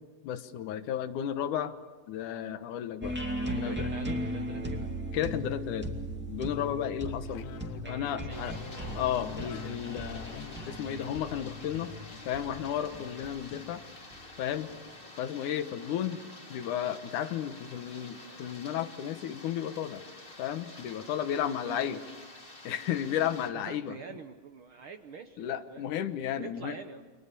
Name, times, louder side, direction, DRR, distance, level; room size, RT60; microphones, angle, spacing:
voice 1, 0.2-1.7 2.1-3.2 3.5-3.9 5.1-5.9 6.3-7.5 7.9-8.5 8.9-11.9 12.3-13.8 14.4-14.7 15.2-16.2 16.5-20.0 20.4-22.0 22.6-24.0 25.4-26.8, left 10 dB, 85° left, 10 dB, 2.6 m, -33 dB
sound 1, 3.0-14.8, equal, 5° right, 1.9 m, -38 dB
voice 2, 3.3-4.9 7.8-7.9 8.2-9.0 21.6-22.1 23.5-25.9 26.4-27.0, right 6 dB, 65° right, 7 dB, 1.3 m, -46 dB
sound 2, 6.6-12.9, left 11 dB, 70° left, 2.0 m, -48 dB
sound 3, 8.3-23.5, left 2 dB, 20° left, 2.5 m, -49 dB
30.0 x 25.0 x 6.8 m, 1.3 s
omnidirectional pair, 3.5 m